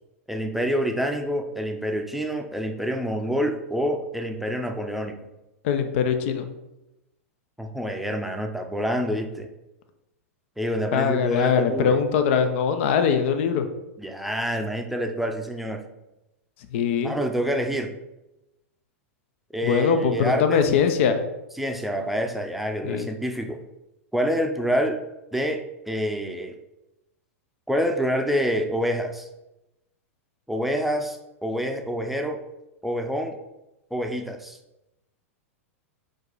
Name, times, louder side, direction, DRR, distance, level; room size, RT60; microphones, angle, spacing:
voice 1, 0.3-5.2 7.6-9.5 10.6-12.0 14.0-15.8 17.0-17.9 19.5-20.8 21.6-23.6 24.1-25.0 25.3-26.5 27.7-29.3 30.5-32.4 32.8-33.4 33.9-34.6, equal, ahead, 3 dB, 0.6 m, -27 dB
voice 2, 5.6-6.5 10.9-13.7 16.7-17.1 19.6-21.2 22.8-23.1, left 7 dB, 55° left, 8 dB, 0.7 m, -22 dB
5.1 x 4.8 x 4.0 m, 0.94 s
hypercardioid pair, 105°, 8 cm